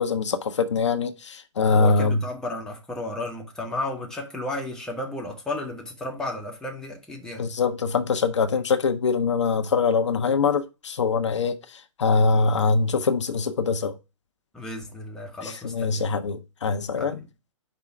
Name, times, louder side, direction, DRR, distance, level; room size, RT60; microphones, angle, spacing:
voice 1, 0.0-2.2 7.4-11.6 12.0-13.9 15.4-17.2, left 4 dB, 65° left, 0.7 m, -23 dB
voice 2, 1.7-7.4 14.5-16.1 17.0-17.3, left 1 dB, 5° left, 1.1 m, -33 dB
5.1 x 3.8 x 5.7 m
figure-of-eight pair, 125°, 16 cm